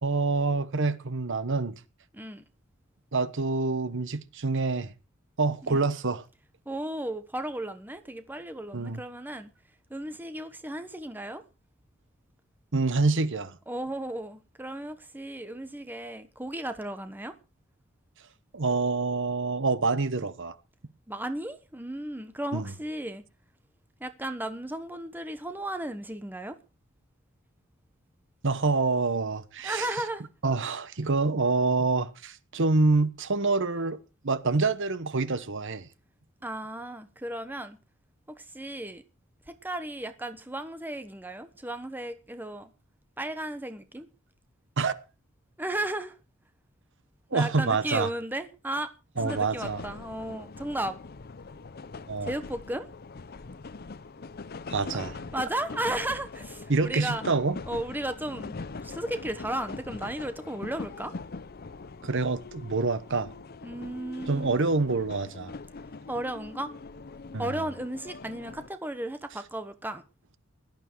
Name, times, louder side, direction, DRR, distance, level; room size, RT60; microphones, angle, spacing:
voice 1, 0.0-1.7 3.1-4.9 5.4-6.2 8.7-9.0 12.7-13.6 18.5-20.5 22.5-22.7 28.4-29.9 30.4-34.0 34.2-35.9 44.8-44.9 47.3-48.1 49.2-49.8 52.1-52.3 54.7-55.2 56.7-57.6 62.0-63.3 64.3-65.5 67.3-67.4, right 3 dB, 55° right, 1.1 m, -26 dB
voice 2, 2.1-2.4 5.6-5.9 6.7-9.5 9.9-11.4 13.7-17.3 21.1-23.2 24.0-26.6 29.6-30.3 36.4-37.8 38.3-39.0 39.5-42.7 43.2-44.1 45.6-46.2 47.3-48.9 49.2-51.0 52.2-52.9 55.3-57.2 57.7-58.5 58.8-61.1 63.6-64.6 66.1-66.7 67.4-70.0, right 1 dB, 10° right, 1.1 m, -34 dB
sound 1, 49.2-68.7, left 3 dB, 45° left, 0.6 m, -42 dB
17.0 x 12.0 x 4.6 m
head